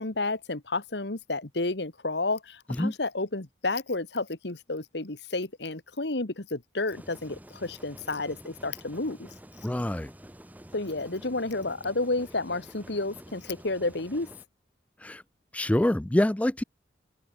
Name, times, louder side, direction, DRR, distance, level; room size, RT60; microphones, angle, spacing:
voice 1, 0.0-9.3 10.7-14.3, left 2 dB, 65° left, 1.7 m, -31 dB
sound 1, 6.9-14.4, equal, 10° right, 1.9 m, -49 dB
voice 2, 9.6-10.1 15.0-15.2 15.5-16.6, left 1 dB, 5° left, 0.3 m, -25 dB
head